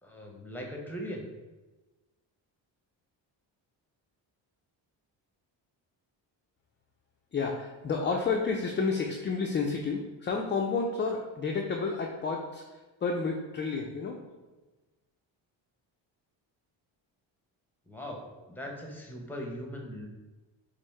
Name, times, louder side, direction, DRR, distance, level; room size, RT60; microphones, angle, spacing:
voice 1, 0.0-1.2 17.9-20.1, equal, 5° left, 0 dB, 0.7 m, -40 dB
voice 2, 7.3-12.6 13.0-14.2, left 4 dB, 25° left, 1 dB, 0.3 m, -30 dB
5.3 x 2.1 x 3.1 m, 1.2 s
cardioid pair, 80°, 46 cm